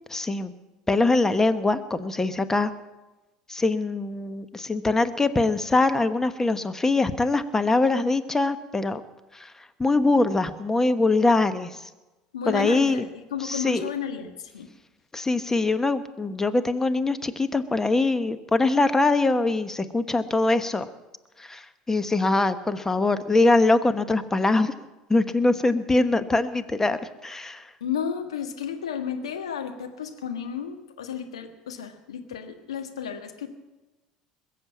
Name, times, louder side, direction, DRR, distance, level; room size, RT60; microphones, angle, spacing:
voice 1, 0.1-0.5 0.9-2.7 3.5-9.0 9.4-9.5 9.8-11.7 12.5-13.0 13.4-13.9 15.1-20.9 21.4-21.6 21.9-24.7 25.1-27.6, left 2 dB, 15° left, 11 dB, 1.1 m, -23 dB
voice 2, 12.3-14.7 27.8-33.5, left 7 dB, 90° left, 5 dB, 1.5 m, -32 dB
21.0 x 7.7 x 8.5 m, 1.1 s
hypercardioid pair, 75°, 3 cm